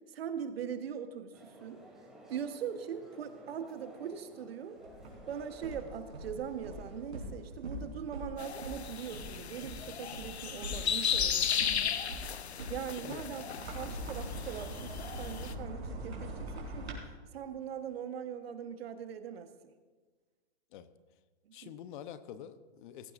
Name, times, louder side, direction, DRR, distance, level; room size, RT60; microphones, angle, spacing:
voice 1, 0.1-1.8 2.3-4.8 5.3-11.9 12.7-17.0 17.3-19.5 21.5-21.6, right 8 dB, 65° right, 8 dB, 1.3 m, -41 dB
sound 1, 1.3-7.1, right 1 dB, ahead, 3.1 m, -55 dB
sound 2, 4.8-16.9, equal, 85° right, 4.1 m, -43 dB
sound 3, 8.4-15.5, left 8 dB, 85° left, 0.8 m, -35 dB
voice 2, 12.9-13.2 20.7-20.9 21.5-23.1, left 10 dB, 50° left, 12 dB, 0.9 m, -47 dB
17.0 x 15.0 x 2.6 m, 1.4 s
hypercardioid pair, 125°, 32 cm